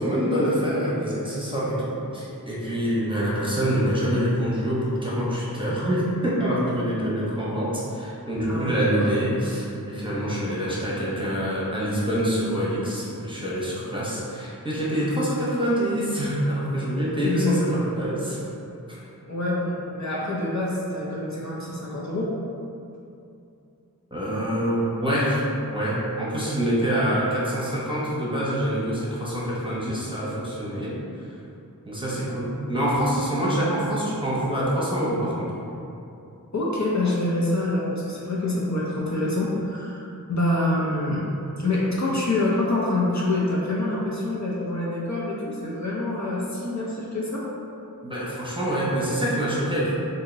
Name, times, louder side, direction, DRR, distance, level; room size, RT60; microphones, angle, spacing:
voice 1, 0.0-18.4 18.9-19.0 24.1-30.9 31.2-31.3 31.9-35.5 48.0-49.9, equal, 15° right, -8 dB, 0.9 m, -25 dB
voice 2, 8.5-8.9 17.2-17.6 19.3-22.3 36.5-41.3 41.6-47.4, left 2 dB, 50° left, -6 dB, 0.7 m, -26 dB
2.9 x 2.7 x 3.9 m, 2.7 s
wide cardioid pair, 40°, 37 cm